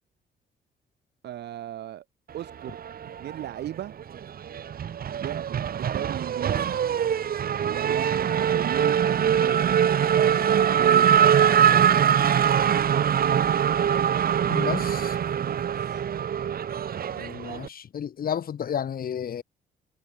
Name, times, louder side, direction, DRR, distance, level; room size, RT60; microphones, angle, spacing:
voice 1, 1.2-2.0 2.3-2.8 3.2-3.9 5.2-6.8 7.6-12.2 13.2-13.6 15.4-16.1, right 12 dB, 80° right, 7.4 m, -37 dB
Race car auto racing / Accelerating revving vroom, 2.7-3.7 4.0-17.7, right 8 dB, 60° right, 7.5 m, -23 dB
voice 2, 14.5-15.2 17.1-19.4, left 8 dB, 60° left, 7.0 m, -32 dB
cardioid pair, 85°, 17 cm